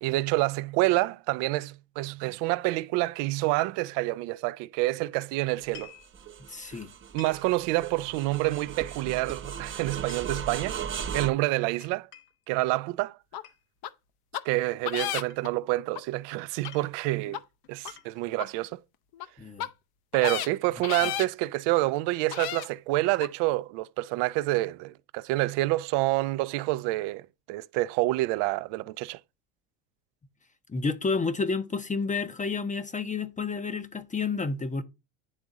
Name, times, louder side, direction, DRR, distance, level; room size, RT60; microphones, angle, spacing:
voice 1, 0.0-5.9 7.1-10.8 11.1-12.1 12.5-13.2 14.4-17.4 17.7-18.8 20.1-29.2, right 19 dB, 65° right, 0.5 m, -28 dB
sound 1, 5.6-6.1 7.2-7.5 8.9-9.3 9.8-11.0 11.8-12.4 13.4-13.6 14.8-15.5 16.3-16.4 16.6-16.9 17.6-18.3, left 9 dB, 90° left, 1.1 m, -49 dB
sound 2, 5.6-11.3, right 7 dB, 25° right, 0.7 m, -37 dB
voice 2, 6.5-6.9 19.4-19.7 30.7-34.8, left 4 dB, 15° left, 0.7 m, -30 dB
sound 3, 13.3-13.4 13.8-13.9 14.3-14.4 14.8-15.5 15.9-16.0 16.6-16.7 17.3-17.4 17.8-17.9 18.4-18.5 19.1-19.2 19.6-19.7 20.1-20.5 20.8-21.3 21.9-22.0 22.3-22.7 23.2-23.3, left 12 dB, 55° left, 0.7 m, -32 dB
9.8 x 3.5 x 3.8 m
supercardioid pair, 80°, 45 cm